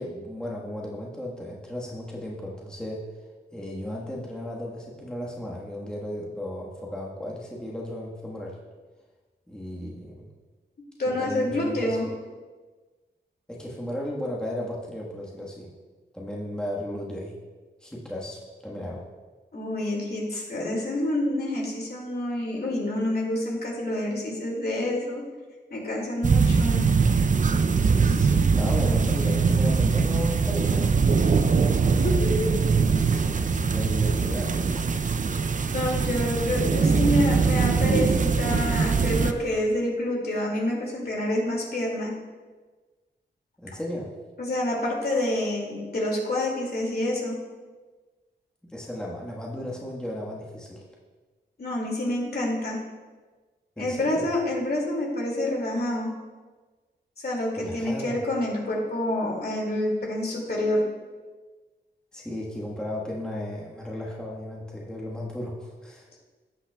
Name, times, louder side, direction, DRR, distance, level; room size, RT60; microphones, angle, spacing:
voice 1, 0.0-3.0 3.5-8.6 9.5-10.3 11.0-12.1 13.5-15.7 16.1-17.3 17.8-19.0 27.8-31.0 33.4-35.0 43.6-44.2 48.7-50.8 53.8-54.3 57.6-58.2 62.1-66.1, left 1 dB, 5° left, -4 dB, 1.5 m, -35 dB
voice 2, 11.0-12.1 19.5-25.2 25.7-26.8 31.6-31.7 32.0-32.6 35.7-42.1 44.4-47.4 51.6-52.8 53.8-56.1 57.2-60.8, left 1 dB, 55° left, -2 dB, 2.4 m, -27 dB
sound 1, 26.2-39.3, right 5 dB, 45° right, 0.5 m, -22 dB
17.0 x 5.8 x 2.3 m, 1.3 s
cardioid pair, 65°, 19 cm